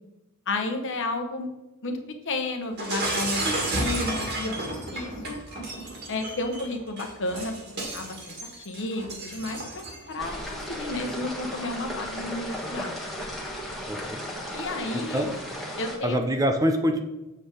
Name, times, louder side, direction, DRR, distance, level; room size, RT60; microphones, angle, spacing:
voice 1, 0.5-1.5 1.8-3.4 3.7-5.4 6.1-13.1 14.5-15.3 15.8-16.2, left 2 dB, 60° left, 5 dB, 1.0 m, -32 dB
Shatter, 2.8-10.1, right 2 dB, 50° right, 2.0 m, -32 dB
sound 1, 10.2-16.0, equal, ahead, 1.3 m, -35 dB
voice 2, 13.9-14.2 14.9-15.3 16.0-17.0, equal, 15° right, 5 dB, 0.6 m, -25 dB
7.6 x 4.4 x 4.9 m, 0.99 s
head